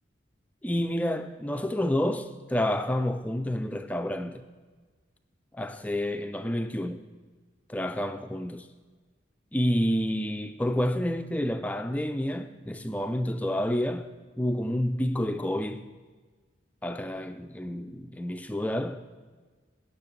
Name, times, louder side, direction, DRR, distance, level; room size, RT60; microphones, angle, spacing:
voice 1, 0.6-4.4 5.5-7.0 7.7-8.7 9.5-14.1 14.4-15.9 16.8-19.1, left 1 dB, 10° left, 0.3 m, -29 dB
10.5 x 6.0 x 5.8 m
head